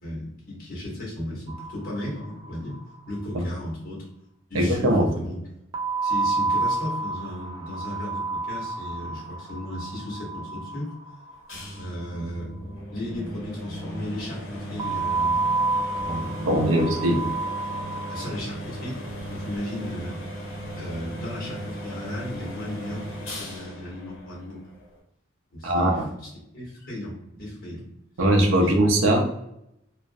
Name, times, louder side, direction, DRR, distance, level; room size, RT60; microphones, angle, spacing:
voice 1, 0.0-2.8 3.1-4.1 4.5-5.4 6.0-10.9 11.8-12.5 12.9-15.4 16.0-16.8 18.1-19.0 19.3-20.2 20.7-24.6 25.5-27.8 28.6-28.7, left 1 dB, 45° left, -4 dB, 1.0 m, -35 dB
sound 1, 1.5-2.5 2.7-2.8 3.1-3.2 5.7-11.8 14.8-18.4, right 3 dB, 20° right, 0.3 m, -29 dB
voice 2, 4.5-5.1 16.5-17.2 25.6-26.1 28.2-29.2, right 1 dB, 85° right, 3 dB, 0.5 m, -20 dB
sound 2, 11.5-25.0, equal, 70° left, 0.7 m, -37 dB
2.4 x 2.0 x 2.6 m, 0.81 s
head